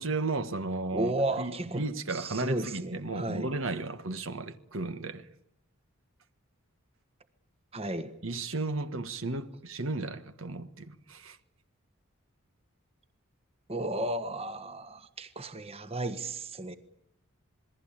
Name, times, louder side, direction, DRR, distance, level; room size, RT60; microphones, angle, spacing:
voice 1, 0.0-1.1 1.4-5.3 8.2-11.4, right 3 dB, 70° right, 1.5 m, -34 dB
voice 2, 0.9-1.8 2.1-3.5 7.7-8.1 13.7-16.8, right 1 dB, 30° right, 1.4 m, -33 dB
27.5 x 21.0 x 8.8 m
head